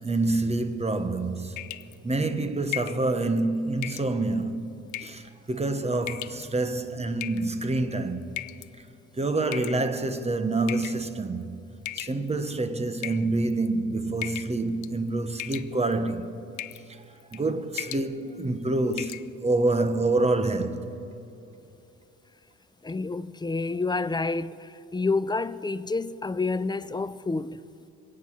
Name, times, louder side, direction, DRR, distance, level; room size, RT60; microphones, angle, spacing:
voice 1, 0.0-1.7 2.0-4.7 5.0-5.2 5.5-8.3 9.2-11.5 12.0-16.3 17.3-20.9, right 2 dB, 20° right, 1.2 m, -27 dB
sound 1, 1.6-2.0 2.7-3.0 3.8-4.1 4.9-5.2 6.0-6.4 7.2-7.7 8.4-8.7 9.5-10.1 10.7-11.0 11.8-12.5 13.0-13.7 14.2-14.6 14.8-15.1 15.4-16.0 16.6-16.8 17.2-17.4 17.7-18.1 18.4-18.5 18.9-19.2, left 16 dB, 80° left, 0.6 m, -36 dB
voice 2, 22.8-27.6, left 3 dB, 15° left, 0.4 m, -29 dB
26.5 x 9.1 x 6.0 m
cardioid pair, 90°, 30 cm